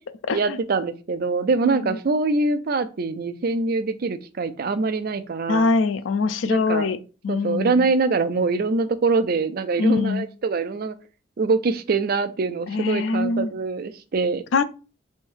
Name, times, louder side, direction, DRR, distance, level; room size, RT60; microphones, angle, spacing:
voice 1, 0.3-5.7 6.5-6.9 7.3-11.0 11.4-14.4, right 3 dB, 50° right, 0.4 m, -24 dB
voice 2, 1.6-2.0 5.5-7.0 7.2-7.9 9.8-10.3 12.7-13.5 14.5-14.6, left 4 dB, 75° left, 0.4 m, -23 dB
3.4 x 2.6 x 4.5 m
head